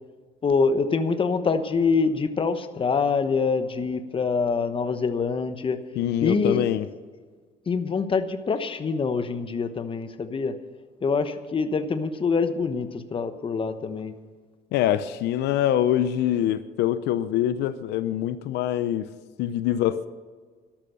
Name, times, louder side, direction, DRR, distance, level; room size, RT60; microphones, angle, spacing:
voice 1, 0.4-5.8 6.2-6.6 7.7-10.5 11.0-14.1, left 4 dB, 30° left, 10 dB, 1.1 m, -25 dB
voice 2, 6.0-6.8 14.7-19.1 19.4-20.1, left 11 dB, 85° left, 13 dB, 0.7 m, -24 dB
12.5 x 12.0 x 6.9 m, 1.5 s
cardioid pair, 110°, 17 cm